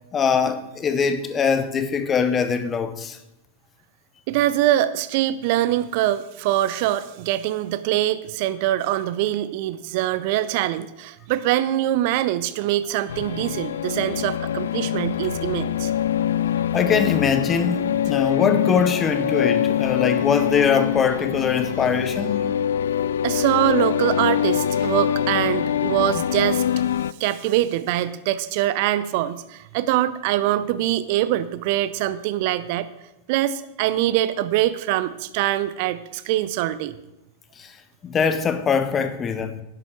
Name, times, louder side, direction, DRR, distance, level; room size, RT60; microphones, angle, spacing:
voice 1, 0.1-3.2 16.7-22.4 37.6-37.7 38.0-39.6, left 6 dB, 25° left, 1.2 m, -22 dB
voice 2, 4.3-15.9 23.2-26.6 27.2-32.9 33.3-36.9, right 13 dB, 50° right, 0.7 m, -23 dB
sound 1, 13.1-27.1, left 9 dB, 65° left, 0.4 m, -24 dB
11.5 x 11.0 x 4.6 m
figure-of-eight pair, 90°, 0 cm